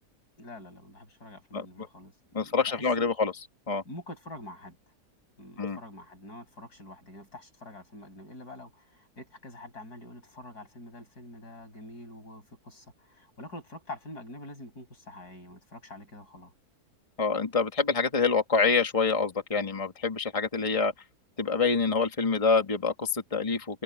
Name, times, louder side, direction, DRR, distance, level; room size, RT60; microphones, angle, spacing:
voice 1, 0.4-3.1 3.8-4.8 5.4-16.5, left 1 dB, 90° left, 8.5 m, -46 dB
voice 2, 2.3-3.3 3.7-3.8 5.6-5.8 17.2-20.9 21.4-23.8, left 4 dB, 20° left, 1.9 m, -26 dB
omnidirectional pair, 1.6 m